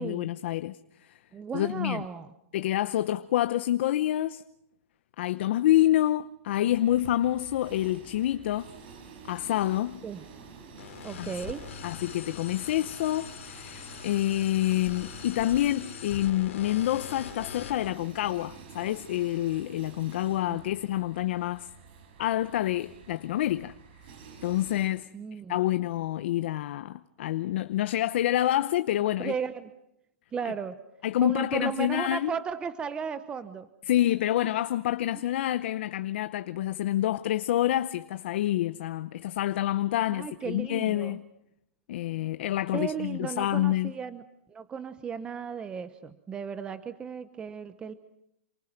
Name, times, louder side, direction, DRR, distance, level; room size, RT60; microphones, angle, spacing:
voice 1, 0.0-1.1 1.5-2.1 2.5-4.4 5.2-8.7 9.3-10.0 11.2-11.3 11.8-21.7 22.2-23.7 24.4-25.1 25.5-29.3 31.0-32.3 33.9-41.2 41.9-43.9, left 13 dB, 55° left, 0.8 m, -27 dB
voice 2, 1.3-2.3 10.0-10.2 11.0-11.7 20.5-20.6 25.1-25.6 29.2-29.7 30.3-30.8 31.2-33.7 34.0-34.1 40.1-41.2 42.7-47.9, right 6 dB, 15° right, 0.9 m, -35 dB
sound 1, 6.7-24.9, right 5 dB, 50° right, 7.6 m, -49 dB
sound 2, 10.8-17.9, left 10 dB, 75° left, 2.9 m, -43 dB
28.0 x 24.5 x 6.0 m
hypercardioid pair, 160°, 7 cm